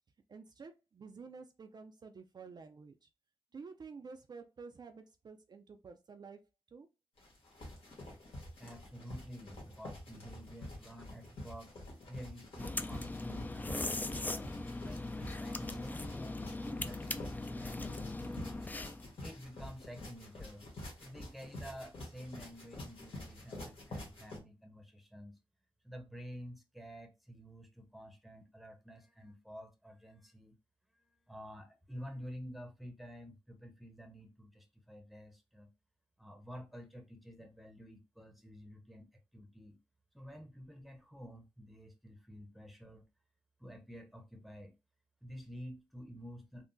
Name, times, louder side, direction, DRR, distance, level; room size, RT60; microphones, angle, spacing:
voice 1, 0.3-3.1 3.5-6.4 6.7-6.9, right 5 dB, 50° right, 0.4 m, -51 dB
sound 1, 7.2-24.4, left 1 dB, 85° left, 1.4 m, -48 dB
voice 2, 8.6-11.7 12.1-14.5 14.8-18.7 19.2-20.7 21.0-25.4 25.8-30.6 30.9-35.7 36.2-39.8 40.1-43.1 43.6-44.7 45.2-46.7, equal, ahead, 0.7 m, -50 dB
sound 2, 12.6-19.1, left 2 dB, 20° left, 0.3 m, -40 dB
3.6 x 2.1 x 2.6 m
cardioid pair, 65°, 9 cm